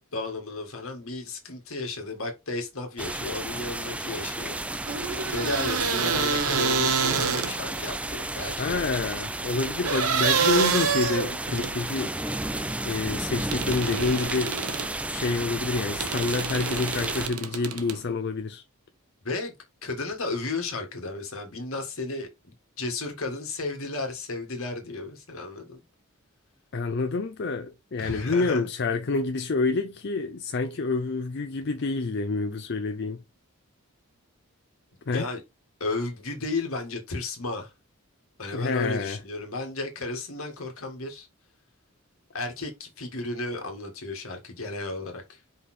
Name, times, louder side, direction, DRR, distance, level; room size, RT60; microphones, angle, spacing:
voice 1, 0.0-4.5 5.3-8.8 19.2-19.5 19.8-22.3 22.8-25.8 28.0-28.7 35.0-35.4 35.8-37.7 38.4-41.3 42.3-45.4, left 3 dB, 70° left, 1.9 m, -33 dB
sound 1, 3.0-17.3, right 2 dB, 5° right, 0.3 m, -32 dB
sound 2, 4.9-7.9 9.8-11.8 13.5-14.9 16.0-18.0, right 5 dB, 80° right, 0.9 m, -27 dB
voice 2, 8.6-12.1 12.8-14.5 15.1-18.6 26.7-33.2 35.1-35.3 38.5-39.2, left 3 dB, 50° left, 0.5 m, -28 dB
5.1 x 4.3 x 4.3 m
head